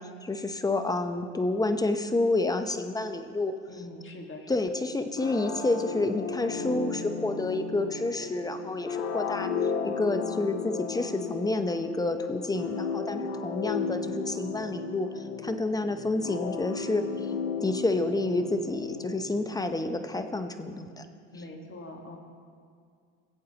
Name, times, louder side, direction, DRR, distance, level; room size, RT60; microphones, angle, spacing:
voice 1, 0.0-3.5 4.5-9.5 9.8-17.3 17.6-21.1, left 2 dB, 10° left, 8 dB, 0.7 m, -29 dB
voice 2, 3.7-4.6 21.3-22.2, left 1 dB, 30° left, 3 dB, 1.6 m, -43 dB
sound 1, 5.2-19.7, left 5 dB, 90° left, 1.1 m, -34 dB
19.0 x 8.2 x 2.9 m, 2.2 s
supercardioid pair, 85°, 38 cm